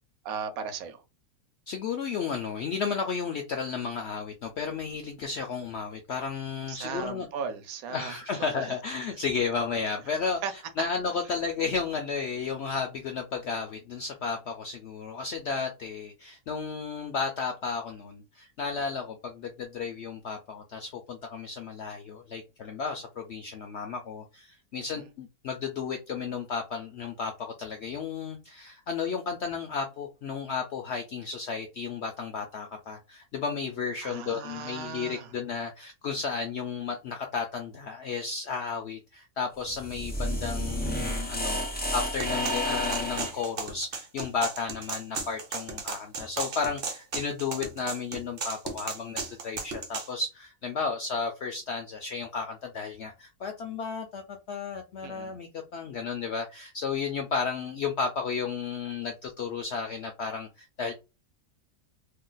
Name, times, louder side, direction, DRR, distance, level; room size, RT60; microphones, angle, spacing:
voice 1, 0.2-1.0 6.7-8.2 10.4-10.5 34.0-35.3 55.0-55.3, right 6 dB, 70° right, 1.0 m, -36 dB
voice 2, 1.7-7.3 7.9-60.9, left 5 dB, 75° left, 0.6 m, -33 dB
sound 1, 39.6-43.5, equal, 15° left, 0.3 m, -31 dB
sound 2, 42.2-50.1, right 4 dB, 50° right, 0.8 m, -35 dB
2.8 x 2.2 x 3.8 m
omnidirectional pair, 1.6 m